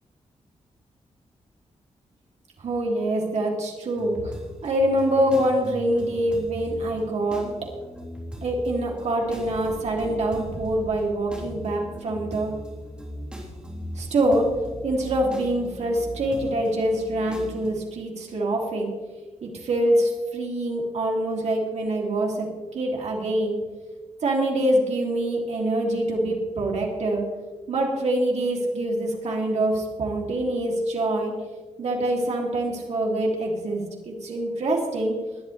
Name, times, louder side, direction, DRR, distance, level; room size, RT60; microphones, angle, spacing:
voice 1, 2.6-4.4 4.6-7.5 8.4-12.5 14.0-14.5 14.8-18.9 19.4-22.5 22.7-23.6 24.2-27.2 27.7-31.3 31.8-35.1, right 1 dB, 65° right, -1 dB, 2.9 m, -25 dB
sound 1, 3.9-17.7, right 1 dB, 10° right, 3.6 m, -39 dB
20.5 x 11.0 x 3.3 m, 1.3 s
wide cardioid pair, 135°, 12 cm